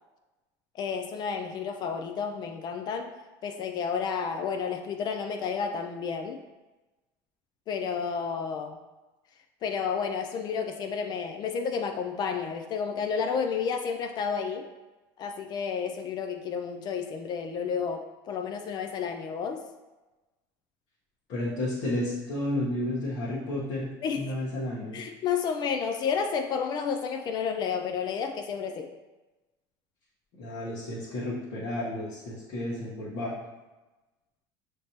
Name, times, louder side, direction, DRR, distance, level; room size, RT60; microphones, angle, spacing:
voice 1, 0.7-3.1 3.4-6.4 7.7-8.8 9.6-14.6 15.2-19.6 24.0-24.3 24.9-28.9, left 6 dB, 45° left, 5 dB, 0.4 m, -31 dB
voice 2, 21.3-23.9 24.1-25.0 30.4-33.3, left 1 dB, 60° left, -8 dB, 1.1 m, -32 dB
5.7 x 3.3 x 2.8 m, 1.1 s
supercardioid pair, 120°, 10 cm